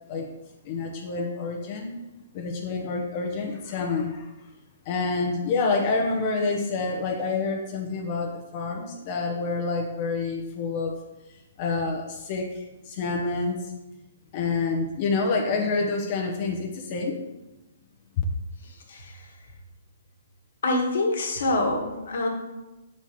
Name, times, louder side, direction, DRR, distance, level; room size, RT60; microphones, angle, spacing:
voice 1, 0.6-1.9 2.3-4.3 4.8-10.9 11.6-13.7 14.3-17.2 18.2-18.3, left 4 dB, 40° left, 0 dB, 0.9 m, -27 dB
voice 2, 18.6-19.3 20.6-22.3, left 2 dB, 65° left, 1 dB, 1.5 m, -26 dB
5.7 x 4.3 x 4.6 m, 1.0 s
hypercardioid pair, 135°, 0 cm